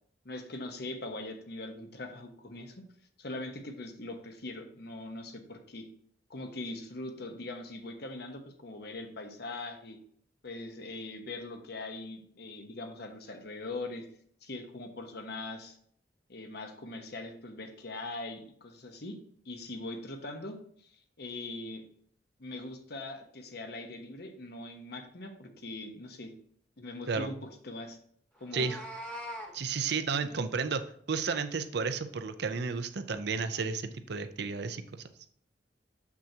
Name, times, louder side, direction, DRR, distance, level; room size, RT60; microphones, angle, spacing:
voice 1, 0.2-2.8 3.2-5.9 6.3-10.0 10.4-14.1 14.4-15.8 16.3-19.2 19.4-21.8 22.4-26.3 26.8-27.3 27.6-28.0 28.4-28.7 29.7-29.9 30.2-30.3, left 2 dB, 65° left, 5 dB, 1.1 m, -41 dB
Meow, 28.4-29.5, equal, 10° left, 1.2 m, -41 dB
voice 2, 29.5-35.0, right 5 dB, 65° right, 10 dB, 0.6 m, -32 dB
7.3 x 6.1 x 2.8 m, 0.62 s
head